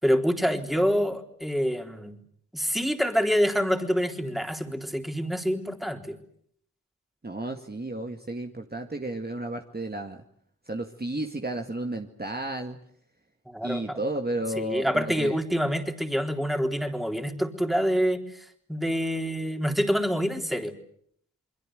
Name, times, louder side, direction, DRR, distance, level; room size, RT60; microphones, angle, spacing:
voice 1, 0.0-2.1 2.5-6.2 13.5-14.0 14.6-20.7, equal, ahead, 4 dB, 3.9 m, -26 dB
voice 2, 7.2-10.2 10.7-12.8 13.6-15.4, right 1 dB, 25° right, 3 dB, 2.0 m, -32 dB
29.0 x 22.0 x 7.8 m, 0.67 s
cardioid pair, 40°, 35 cm